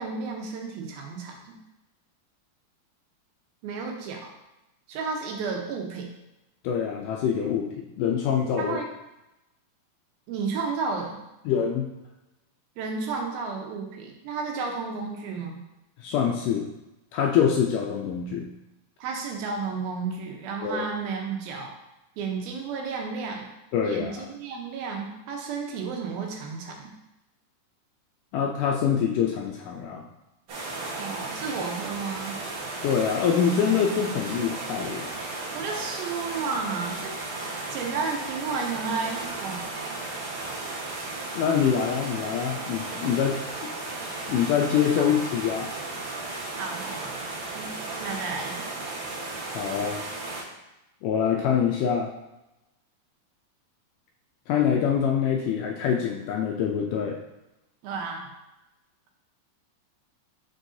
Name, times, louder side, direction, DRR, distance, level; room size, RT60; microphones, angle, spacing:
voice 1, 0.0-1.6 3.6-4.2 4.9-6.1 8.6-8.9 10.3-11.2 12.8-15.6 19.0-21.7 22.2-23.5 23.8-26.9 31.0-32.4 35.5-37.1 37.7-39.7 45.0-45.1 46.5-47.1 47.6-48.7 57.8-58.3, right 4 dB, 85° right, 0 dB, 2.8 m, -32 dB
voice 2, 6.6-8.8 11.5-11.9 16.0-16.7 17.1-18.5 20.6-20.9 23.7-24.3 28.3-30.0 32.8-35.1 37.7-37.8 41.4-43.7 44.3-45.7 49.5-50.0 51.0-52.1 54.5-57.2, left 7 dB, 80° left, 0 dB, 1.9 m, -25 dB
sound 1, 30.5-50.4, right 2 dB, 55° right, 1.7 m, -35 dB
6.3 x 6.0 x 2.7 m, 0.95 s
omnidirectional pair, 4.2 m